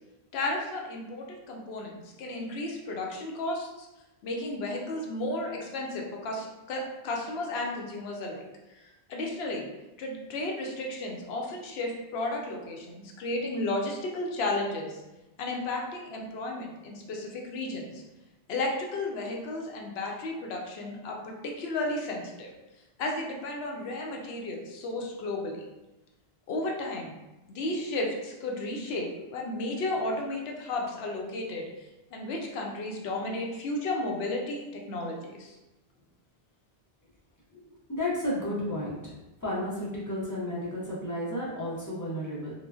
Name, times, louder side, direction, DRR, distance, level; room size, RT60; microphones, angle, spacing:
voice 1, 0.3-1.9 2.2-3.9 4.2-8.5 8.7-8.8 9.1-9.7 10.0-15.0 15.4-18.0 18.5-22.5 23.0-25.7 26.5-27.1 27.5-35.6, left 2 dB, 75° left, 0 dB, 0.8 m, -33 dB
voice 2, 37.9-39.1 39.4-42.5, left 1 dB, 25° left, -7 dB, 0.5 m, -32 dB
3.1 x 2.1 x 2.4 m, 1.0 s
omnidirectional pair, 1.1 m